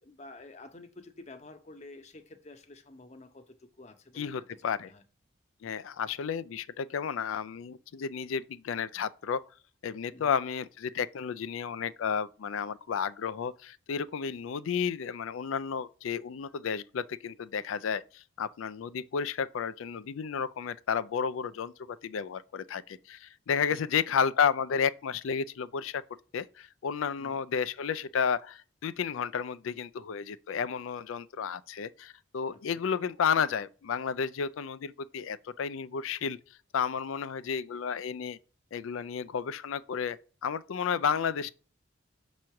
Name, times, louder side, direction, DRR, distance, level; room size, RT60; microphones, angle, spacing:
voice 1, 0.0-5.0 10.1-10.4 23.7-23.9 27.2-27.4 32.5-32.8, left 2 dB, 35° left, 0.7 m, -50 dB
voice 2, 4.2-4.9 5.6-9.4 9.8-26.0 26.3-36.4 36.7-38.4 38.7-41.5, left 6 dB, 80° left, 0.4 m, -32 dB
6.2 x 3.1 x 5.7 m
head